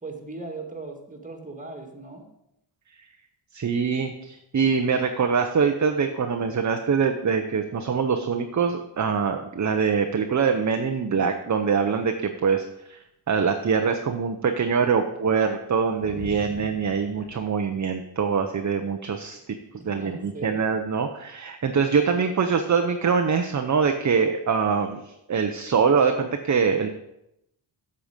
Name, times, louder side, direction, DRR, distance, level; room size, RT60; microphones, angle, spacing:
voice 1, 0.0-2.3 19.8-20.6, right 3 dB, 15° right, 3 dB, 1.9 m, -38 dB
voice 2, 3.5-19.4 19.9-26.9, right 6 dB, 35° right, 6 dB, 0.8 m, -24 dB
sound 1, 9.5-10.8 11.1-11.2 11.5-14.3 14.8-20.4, left 3 dB, 85° left, 2.2 m, -47 dB
7.9 x 7.1 x 5.1 m, 0.82 s
cardioid pair, 70°, 49 cm